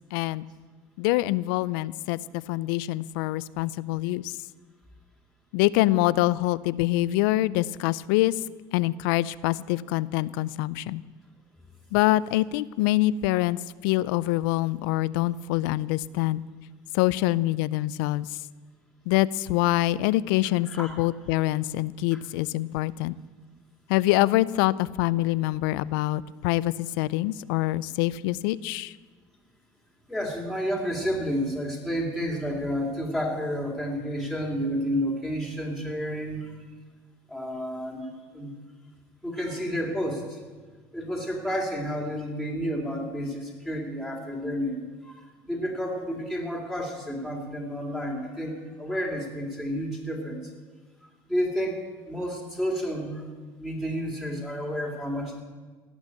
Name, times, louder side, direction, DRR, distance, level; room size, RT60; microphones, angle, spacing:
voice 1, 0.1-0.5 1.0-4.4 5.5-8.4 8.7-11.0 11.9-16.4 16.9-18.4 19.1-23.1 23.9-28.9, left 17 dB, 85° left, 19 dB, 0.4 m, -25 dB
voice 2, 30.1-36.5 37.3-38.1 38.3-38.5 39.2-40.4 40.9-45.2 45.4-50.4 51.3-53.3 53.6-55.4, equal, 5° right, -1 dB, 3.3 m, -30 dB
17.0 x 6.3 x 8.7 m, 1.4 s
supercardioid pair, 95°, 11 cm